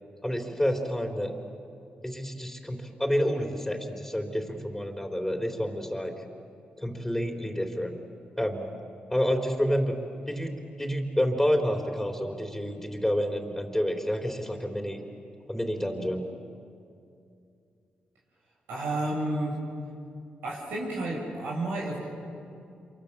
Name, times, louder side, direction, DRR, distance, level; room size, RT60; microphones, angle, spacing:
voice 1, 0.2-1.3 2.0-6.1 6.8-7.9 8.4-8.7 9.1-10.0 10.3-15.0 15.5-16.2, equal, 5° left, 2 dB, 3.9 m, -29 dB
voice 2, 18.7-19.6 20.4-22.2, right 1 dB, 90° right, -4 dB, 7.1 m, -31 dB
27.5 x 24.0 x 7.5 m, 2.5 s
supercardioid pair, 55°, 3 cm